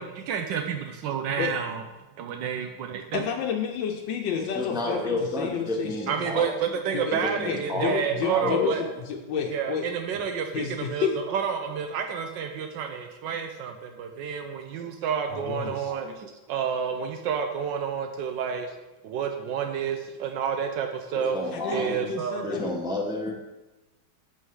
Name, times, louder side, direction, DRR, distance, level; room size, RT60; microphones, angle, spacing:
voice 1, 0.0-1.8 2.2-3.2 6.1-8.8 9.5-18.7 19.0-21.4 21.7-22.5, right 7 dB, 85° right, 5 dB, 1.4 m, -30 dB
voice 2, 3.1-6.3 6.9-7.2 7.4-9.9 10.1-10.2 10.5-11.2 15.3-15.9 21.5-22.7, left 7 dB, 85° left, 3 dB, 1.5 m, -31 dB
voice 3, 4.5-6.5 7.1-8.0 8.3-8.9 21.1-22.1 22.4-23.3, left 2 dB, 5° right, -1 dB, 1.0 m, -30 dB
8.3 x 5.6 x 4.8 m, 1.1 s
omnidirectional pair, 2.0 m